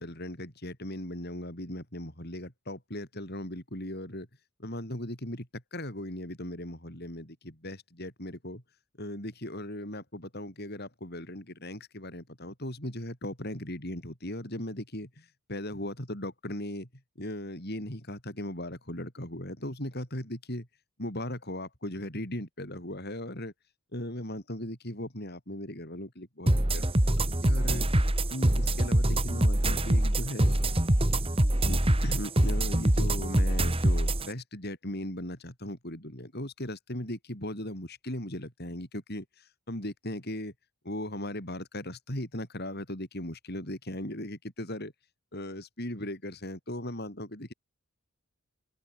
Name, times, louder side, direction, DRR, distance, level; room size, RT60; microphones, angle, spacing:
voice 1, 0.0-4.3 4.6-8.6 9.0-16.9 17.2-20.7 21.0-23.5 23.9-26.9 27.4-27.9 28.3-30.6 31.6-40.5 40.8-44.9 45.3-47.5, left 1 dB, 45° left, 7.3 m, -38 dB
sound 1, 26.5-34.3, right 1 dB, 25° right, 1.9 m, -24 dB
open air
head